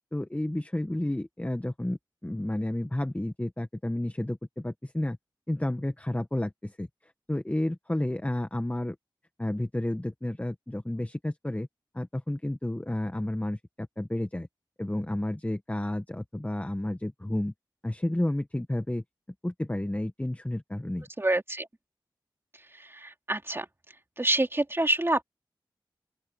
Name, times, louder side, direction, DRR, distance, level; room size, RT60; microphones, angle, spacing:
voice 1, 0.1-5.2 5.5-9.0 9.4-11.7 11.9-14.5 14.8-17.5 17.8-19.0 19.4-21.0, left 1 dB, 15° left, 1.4 m, -31 dB
voice 2, 21.2-21.7 22.5-23.7 24.2-25.2, right 1 dB, 30° right, 2.9 m, -27 dB
open air
cardioid pair, 45°, 8 cm